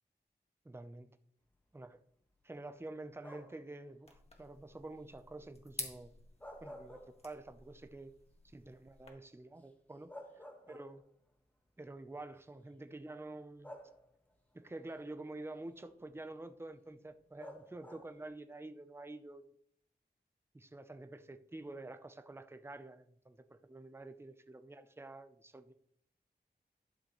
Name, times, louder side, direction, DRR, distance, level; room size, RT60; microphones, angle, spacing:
voice 1, 0.6-1.1 1.7-2.0 2.4-6.1 6.6-8.1 8.4-10.1 10.4-11.0 11.8-13.7 14.5-19.4 20.5-25.7, right 2 dB, 15° right, 0.6 m, -48 dB
sound 1, 3.2-3.7 6.2-7.6 8.0-8.1 9.6-9.7 10.1-11.2 12.3-12.4 13.6-14.4 17.4-18.3, equal, 10° left, 1.5 m, -51 dB
sound 2, 4.1-9.1, left 2 dB, 40° left, 1.7 m, -50 dB
12.0 x 6.8 x 3.1 m
wide cardioid pair, 105°, 17 cm